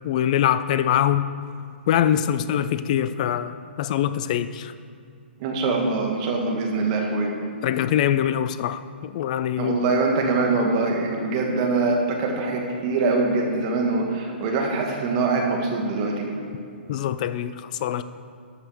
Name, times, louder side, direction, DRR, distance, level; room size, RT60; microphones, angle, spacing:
voice 1, 0.0-1.3 1.9-4.7 7.6-9.8 16.9-18.0, left 10 dB, 40° left, 14 dB, 0.5 m, -23 dB
voice 2, 5.4-7.3 9.6-16.3, right 3 dB, 35° right, 1 dB, 1.9 m, -23 dB
13.5 x 5.6 x 6.6 m, 2.3 s
figure-of-eight pair, 120°, 6 cm